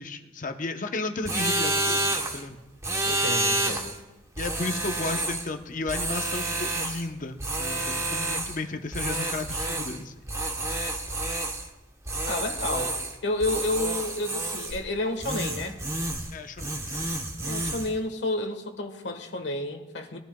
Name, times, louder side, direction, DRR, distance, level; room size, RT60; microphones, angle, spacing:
voice 1, 0.0-2.6 4.4-10.1 16.3-17.1, left 3 dB, 45° left, 0.8 m, -34 dB
sound 1, 1.2-2.4 2.8-4.0 4.4-5.5 5.9-7.1 7.4-8.6 8.9-10.0 10.3-11.7 12.1-13.2 13.4-14.8 15.2-16.3 16.6-17.9, right 2 dB, 15° right, 0.9 m, -29 dB
voice 2, 3.0-4.0 12.3-13.0 13.2-15.8 17.4-20.2, left 2 dB, 75° left, 1.4 m, -30 dB
21.0 x 13.5 x 2.3 m
head